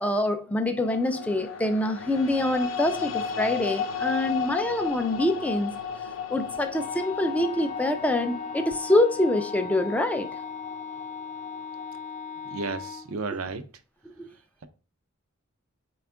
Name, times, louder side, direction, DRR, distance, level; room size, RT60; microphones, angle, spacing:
voice 1, 0.0-5.7 6.3-10.3 14.0-14.3, left 1 dB, 5° left, 0.3 m, -25 dB
sound 1, 0.8-13.0, left 7 dB, 70° left, 0.4 m, -35 dB
Wind instrument woodwind instrument, 6.7-13.1, left 6 dB, 35° left, 0.8 m, -38 dB
voice 2, 12.5-13.6, right 4 dB, 70° right, 0.5 m, -32 dB
4.3 x 2.3 x 3.5 m
head